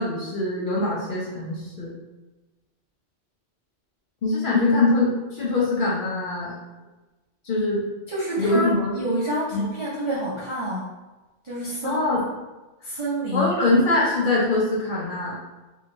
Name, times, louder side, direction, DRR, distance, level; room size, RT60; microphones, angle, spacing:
voice 1, 0.0-1.9 4.2-6.6 7.4-7.8 8.4-9.0 9.5-9.7 11.8-12.3 13.3-15.4, left 2 dB, 50° left, -5 dB, 0.7 m, -23 dB
voice 2, 8.1-10.9 11.4-12.0 12.8-13.5, equal, 40° right, -8 dB, 0.4 m, -28 dB
3.0 x 2.6 x 2.5 m, 1.1 s
omnidirectional pair, 1.2 m